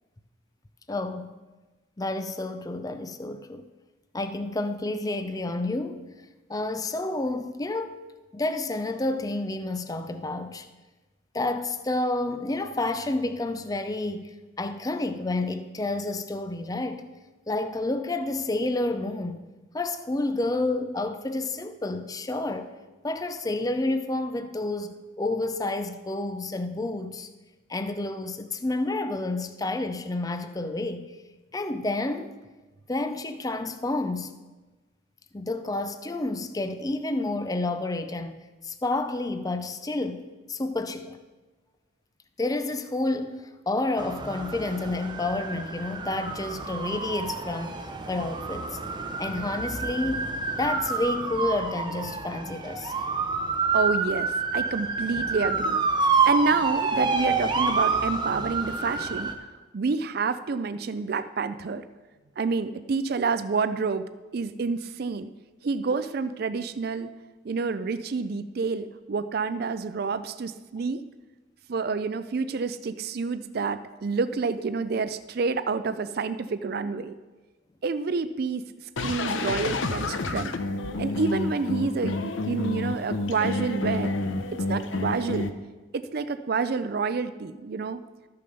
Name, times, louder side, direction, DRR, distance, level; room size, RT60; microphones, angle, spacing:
voice 1, 0.9-1.3 2.0-3.7 4.1-6.1 6.5-8.0 8.3-10.7 11.3-17.1 17.5-19.4 19.7-22.7 23.0-27.3 27.7-31.1 31.5-32.3 32.9-34.3 35.3-41.2 42.4-47.8 48.1-48.8 49.2-50.3 50.5-52.9, left 2 dB, 20° left, 0.5 m, -30 dB
sound 1, 44.0-59.3, right 4 dB, 25° right, 0.8 m, -28 dB
voice 2, 53.7-55.8 56.2-59.3 59.7-61.8 62.4-64.1 64.3-65.3 65.6-67.1 67.4-71.0 71.7-77.2 77.8-78.6 79.0-80.6 81.0-84.1 84.5-85.5 85.9-88.0, right 4 dB, 50° right, 0.4 m, -28 dB
sound 2, 79.0-85.5, left 2 dB, 80° left, 0.7 m, -29 dB
13.0 x 6.7 x 5.3 m
head